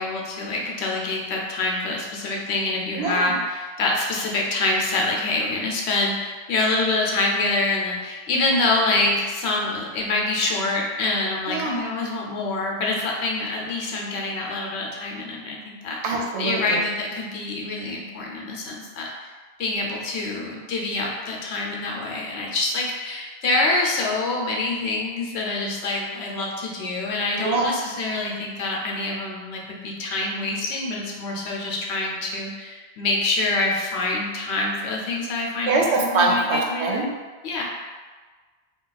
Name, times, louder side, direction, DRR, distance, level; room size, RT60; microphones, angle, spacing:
voice 1, 0.0-16.0 16.4-19.1 19.6-37.1 37.4-37.6, left 2 dB, 80° left, -1 dB, 0.9 m, -26 dB
voice 2, 3.0-3.3 11.5-11.8 16.0-16.8 27.4-27.7 35.7-37.0, right 3 dB, 85° right, 0 dB, 0.9 m, -23 dB
2.4 x 2.2 x 3.8 m, 1.4 s
omnidirectional pair, 1.1 m